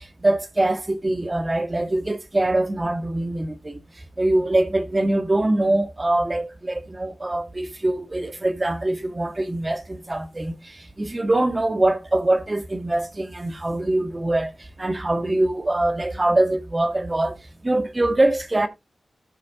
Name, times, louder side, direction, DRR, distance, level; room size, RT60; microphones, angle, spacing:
voice 1, 0.0-18.7, right 1 dB, 30° right, 1.6 m, -23 dB
14.0 x 4.7 x 3.7 m
cardioid pair, 60°, 0 cm